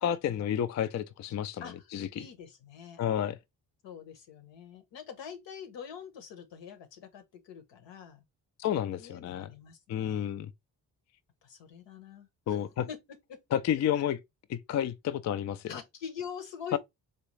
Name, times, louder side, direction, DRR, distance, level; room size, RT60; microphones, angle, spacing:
voice 1, 0.0-1.6 1.9-2.3 3.0-3.4 8.6-9.5 9.9-10.5 12.5-12.9 13.5-14.2 14.5-15.7 16.7-16.8, left 10 dB, 40° left, 0.4 m, -30 dB
voice 2, 2.1-3.0 3.8-8.2 8.9-10.3 11.4-12.6 12.9-13.0 13.3-13.6 15.7-16.8, left 7 dB, 70° left, 1.0 m, -44 dB
3.9 x 2.3 x 3.1 m
supercardioid pair, 50°, 45 cm